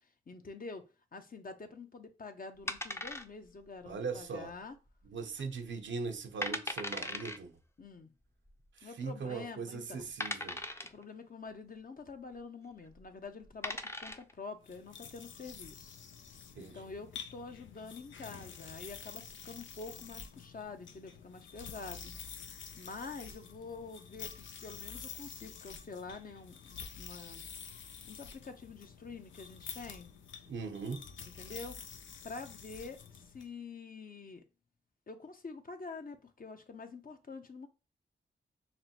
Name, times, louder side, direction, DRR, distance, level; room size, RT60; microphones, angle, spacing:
voice 1, 0.3-4.8 7.8-8.1 8.8-10.1 10.9-16.0 16.6-22.1 22.5-27.5 28.0-30.1 31.3-31.8 32.2-34.4 35.1-37.7, left 4 dB, 50° left, 0.8 m, -47 dB
sound 1, 2.7-3.6 3.9-4.0 4.6-5.0 5.4-5.5 6.1-6.2 6.4-7.4 8.5-8.6 9.2-9.3 10.2-11.0 12.9-13.0 13.4-14.3, left 1 dB, 15° left, 0.6 m, -38 dB
voice 2, 3.9-4.5 5.0-7.5 8.8-10.6 16.6-16.9 30.5-31.0, right 4 dB, 80° right, 0.7 m, -40 dB
sound 2, 14.6-33.5, left 7 dB, 85° left, 0.5 m, -49 dB
5.8 x 2.1 x 2.8 m
cardioid pair, 40°, 19 cm